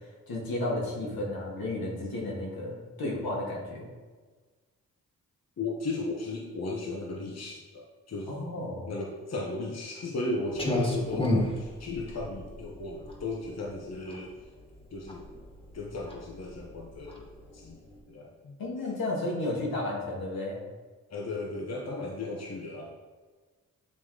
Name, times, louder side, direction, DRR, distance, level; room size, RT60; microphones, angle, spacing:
voice 1, 0.3-3.8 8.3-8.9 18.6-20.6, left 1 dB, 75° left, -3 dB, 1.8 m, -32 dB
voice 2, 5.6-8.4 8.8-14.3 14.9-15.2 15.7-17.3 17.5-17.8 18.1-18.6 21.1-22.9, left 2 dB, 45° left, -1 dB, 1.1 m, -35 dB
Clock, 10.5-18.0, left 1 dB, 15° left, 1.6 m, -33 dB
8.5 x 3.0 x 3.8 m, 1.4 s
supercardioid pair, 45°, 36 cm